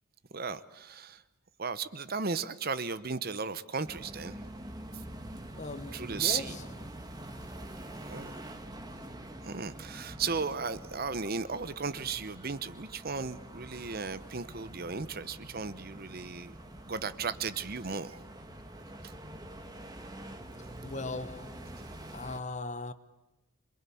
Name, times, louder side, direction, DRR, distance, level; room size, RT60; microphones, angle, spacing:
voice 1, 0.3-1.2 1.6-4.4 5.9-6.6 8.1-8.3 9.4-16.5 16.8-18.2 19.0-19.1 20.6-20.7, right 5 dB, 45° right, 0.9 m, -35 dB
sound 1, 3.8-22.4, right 1 dB, 20° right, 1.8 m, -46 dB
voice 2, 5.6-6.6 20.8-21.7 22.1-22.9, left 3 dB, 35° left, 1.1 m, -39 dB
27.0 x 22.5 x 8.5 m
head